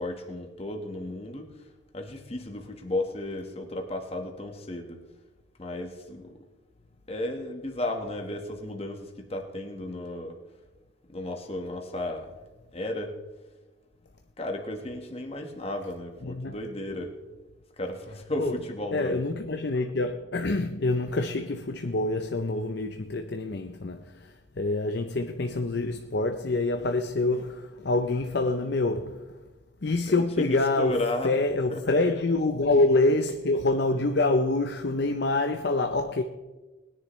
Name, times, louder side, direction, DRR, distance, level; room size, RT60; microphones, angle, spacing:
voice 1, 0.0-1.5 1.9-5.0 5.6-6.3 7.1-10.4 11.1-12.3 12.7-13.2 14.4-17.2 17.8-19.2 30.1-31.4 31.7-31.8, left 1 dB, 30° left, 1.4 m, -34 dB
voice 2, 16.2-16.6 18.4-18.6 18.9-29.4 29.8-36.2, left 2 dB, 55° left, 0.6 m, -26 dB
20.5 x 10.0 x 3.2 m
head